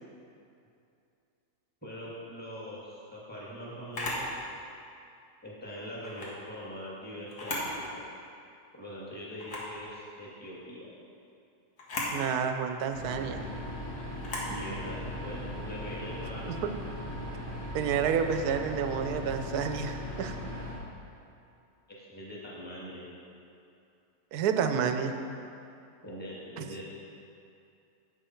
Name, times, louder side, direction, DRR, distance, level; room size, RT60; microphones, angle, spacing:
voice 1, 1.8-4.4 5.4-8.0 8.7-10.9 14.5-16.5 21.9-23.1 26.0-26.8, equal, 5° left, -6 dB, 1.8 m, -42 dB
Camera, 3.9-4.3 6.0-6.3 7.3-7.8 8.2-8.3 9.4-9.7 11.8-12.2 14.2-14.5, left 2 dB, 80° left, 2.2 m, -35 dB
voice 2, 12.1-13.4 16.5-16.7 17.7-20.4 24.3-25.1 26.6-26.7, right 7 dB, 75° right, 7 dB, 1.1 m, -29 dB
sound 1, 12.9-20.7, left 1 dB, 50° left, 3.0 m, -38 dB
10.5 x 8.4 x 4.4 m, 2.6 s
omnidirectional pair, 1.8 m